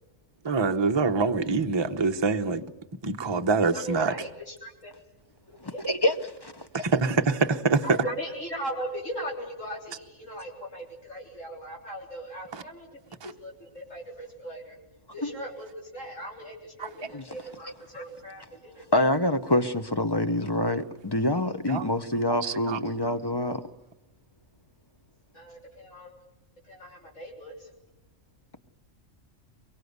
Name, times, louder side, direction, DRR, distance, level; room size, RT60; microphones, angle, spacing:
voice 1, 0.4-2.6 3.0-4.1 6.7-7.8 13.2-13.3 21.7-21.9 22.4-22.8, right 4 dB, 25° right, 0.8 m, -25 dB
voice 2, 3.7-4.9 5.5-5.9 7.8-12.9 13.2-14.8 15.1-18.8 25.3-26.1 26.6-27.7, right 1 dB, 70° left, 4.1 m, -38 dB
voice 3, 18.9-23.6, left 1 dB, 20° left, 0.8 m, -26 dB
23.0 x 23.0 x 8.1 m
omnidirectional pair, 1.3 m